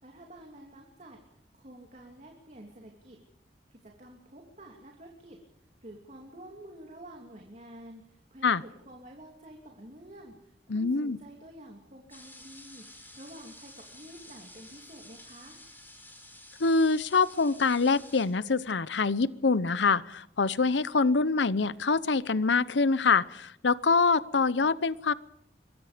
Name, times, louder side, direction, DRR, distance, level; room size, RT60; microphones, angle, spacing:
voice 1, 0.0-1.2 1.5-3.2 3.7-5.4 5.8-15.6, right 1 dB, 40° right, 2 dB, 2.9 m, -49 dB
voice 2, 10.7-11.2 16.6-25.1, left 4 dB, 85° left, 18 dB, 0.8 m, -25 dB
sound 1, 12.1-18.3, left 1 dB, 10° left, 6.2 m, -51 dB
24.0 x 23.0 x 5.2 m, 0.78 s
head